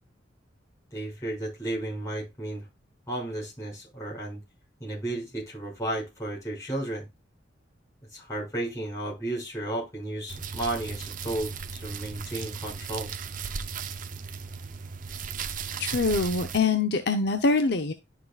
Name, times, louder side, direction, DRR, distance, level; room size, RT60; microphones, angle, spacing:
voice 1, 0.9-2.6 3.1-4.4 4.8-7.1 8.1-13.1, right 1 dB, 15° left, -4 dB, 5.9 m, -33 dB
sound 1, 10.3-16.6, right 6 dB, 45° right, 0.7 m, -36 dB
voice 2, 15.8-17.9, left 3 dB, 60° left, 6 dB, 0.8 m, -24 dB
11.5 x 6.7 x 2.4 m, 0.22 s
head